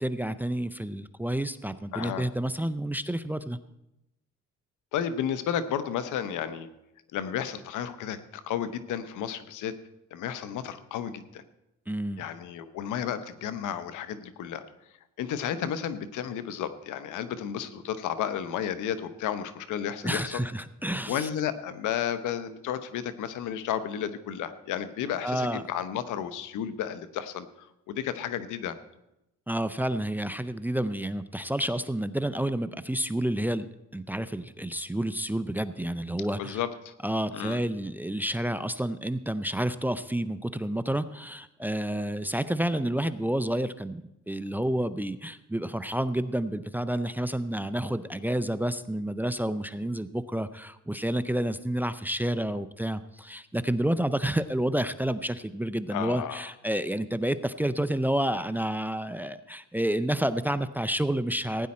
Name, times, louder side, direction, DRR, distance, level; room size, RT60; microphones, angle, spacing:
voice 1, 0.0-3.6 11.9-12.2 20.0-21.3 25.2-25.6 29.5-33.7 33.9-36.6 37.0-44.0 44.3-61.7, right 1 dB, 5° right, 13 dB, 0.5 m, -29 dB
voice 2, 1.9-2.3 4.9-6.7 7.1-9.7 10.1-11.4 12.2-14.6 15.2-20.4 21.1-28.7 36.4-36.9 37.3-37.6 55.9-56.5, left 9 dB, 85° left, 13 dB, 0.9 m, -32 dB
16.0 x 9.7 x 4.3 m, 0.89 s
cardioid pair, 90°, 30 cm